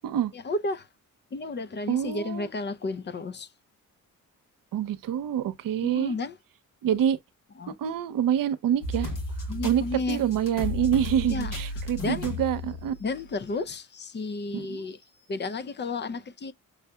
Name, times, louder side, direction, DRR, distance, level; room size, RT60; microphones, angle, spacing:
voice 1, 0.3-0.9 1.3-3.5 5.8-6.4 7.6-7.7 9.5-10.2 11.3-11.5 12.0-12.2 13.0-15.0 15.3-16.5, left 3 dB, 35° left, 0.5 m, -32 dB
voice 2, 1.9-2.5 4.7-6.1 6.8-7.2 7.8-9.1 9.6-12.9 14.5-14.9, right 10 dB, 80° right, 0.7 m, -26 dB
sound 1, 8.8-13.5 14.0-14.1 15.0-15.1, left 1 dB, 75° left, 1.6 m, -34 dB
6.3 x 2.7 x 2.3 m
cardioid pair, 85°, 32 cm